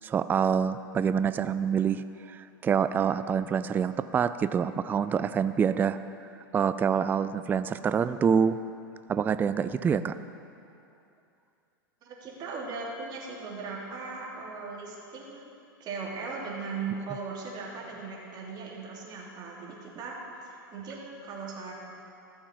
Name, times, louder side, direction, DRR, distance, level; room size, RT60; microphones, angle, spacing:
voice 1, 0.0-6.0 6.5-8.6 9.1-10.2, right 7 dB, 15° right, 13 dB, 0.3 m, -26 dB
voice 2, 12.0-15.5 15.8-21.7, right 4 dB, 35° right, -3 dB, 3.3 m, -38 dB
14.5 x 7.0 x 7.5 m, 2.7 s
hypercardioid pair, 110°, 12 cm